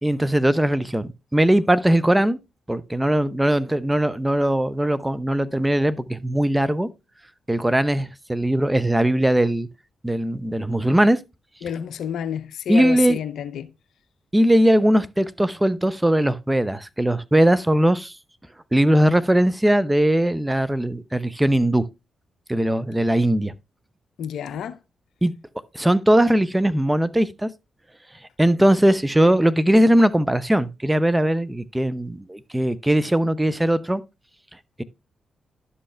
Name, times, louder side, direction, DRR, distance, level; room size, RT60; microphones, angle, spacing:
voice 1, 0.0-2.4 2.7-6.9 7.5-9.7 10.0-11.2 12.7-13.2 14.3-18.1 18.7-21.8 22.5-23.5 25.2-25.3 25.7-27.5 28.4-34.0 34.8-34.9, right 1 dB, 15° right, 0.7 m, -20 dB
voice 2, 11.6-13.7 24.2-24.8 29.2-29.3, left 8 dB, 75° left, 0.6 m, -29 dB
11.5 x 5.4 x 3.3 m
hypercardioid pair, 45°, 0 cm